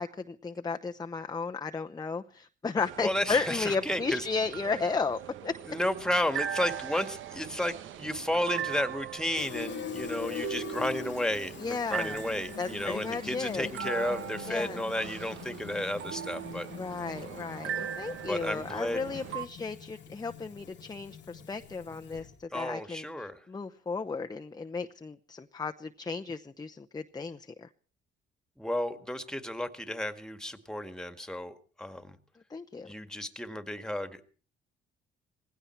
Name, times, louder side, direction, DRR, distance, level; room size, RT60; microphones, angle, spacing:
voice 1, 0.0-5.5 11.6-12.2 12.6-13.7 14.5-14.8 16.8-23.1 23.5-27.7 32.5-32.9, left 4 dB, 20° left, 6 dB, 0.8 m, -34 dB
sound 1, 2.8-19.5, right 10 dB, 80° right, 1.1 m, -40 dB
voice 2, 3.0-4.3 5.7-16.7 18.3-19.0 22.5-23.4 28.6-32.2 32.8-34.2, left 1 dB, 5° left, 9 dB, 1.9 m, -32 dB
Fill (with liquid), 9.3-22.4, left 8 dB, 65° left, 1.4 m, -43 dB
19.0 x 16.5 x 4.5 m, 0.42 s
cardioid pair, 90°, 20 cm